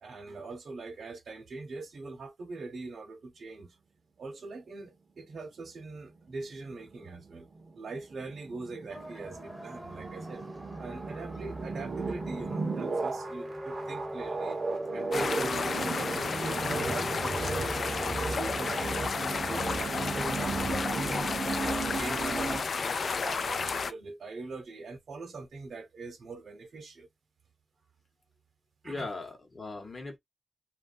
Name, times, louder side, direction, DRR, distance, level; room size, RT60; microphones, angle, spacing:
voice 1, 0.0-3.8 4.2-7.5 7.8-10.4 10.8-14.6 14.9-21.2 21.6-27.1 28.8-29.1, right 3 dB, 70° right, 0.9 m, -42 dB
sound 1, 6.2-22.6, right 3 dB, 40° right, 0.7 m, -35 dB
sound 2, 8.9-17.7, equal, 5° right, 0.8 m, -41 dB
sound 3, 15.1-23.9, left 5 dB, 55° left, 0.3 m, -32 dB
voice 2, 16.7-17.2 17.6-18.0 28.8-30.2, left 3 dB, 30° left, 0.9 m, -40 dB
3.1 x 2.3 x 2.5 m
wide cardioid pair, 175°, 0 cm